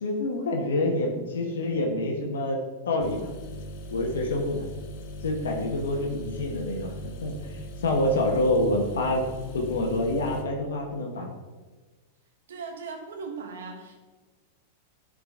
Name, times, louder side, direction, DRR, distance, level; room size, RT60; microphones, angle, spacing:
voice 1, 0.0-2.6 2.9-3.3 3.9-4.7 5.2-6.9 7.2-9.3 9.5-11.3, left 1 dB, 85° left, 1 dB, 1.0 m, -27 dB
sound 1, 3.0-10.4, left 1 dB, 50° left, 0.8 m, -39 dB
voice 2, 12.5-14.0, right 4 dB, 85° right, 2 dB, 1.3 m, -38 dB
8.3 x 3.8 x 3.6 m, 1.3 s
hypercardioid pair, 125°, 0 cm